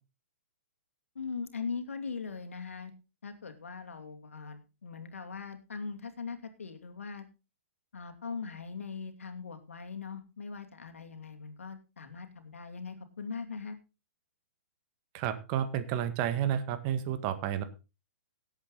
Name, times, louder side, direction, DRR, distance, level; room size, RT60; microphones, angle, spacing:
voice 1, 1.1-2.9 3.2-7.3 7.9-13.8, left 5 dB, 80° left, 7 dB, 2.5 m, -40 dB
voice 2, 15.1-17.6, right 10 dB, 35° right, 10 dB, 1.6 m, -31 dB
17.5 x 8.2 x 3.9 m, 0.29 s
hypercardioid pair, 130°, 7 cm